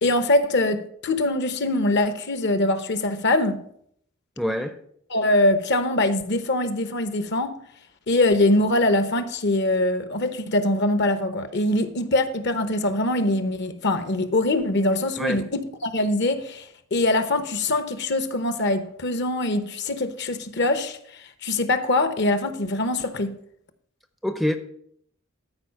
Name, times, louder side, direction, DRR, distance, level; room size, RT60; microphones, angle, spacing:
voice 1, 0.0-3.6 5.1-7.6 8.1-16.6 16.9-21.0 21.4-23.3, left 2 dB, 55° left, 0.8 m, -23 dB
voice 2, 4.4-4.8 15.2-15.4 24.2-24.6, equal, ahead, 0.5 m, -25 dB
13.0 x 4.8 x 5.8 m
head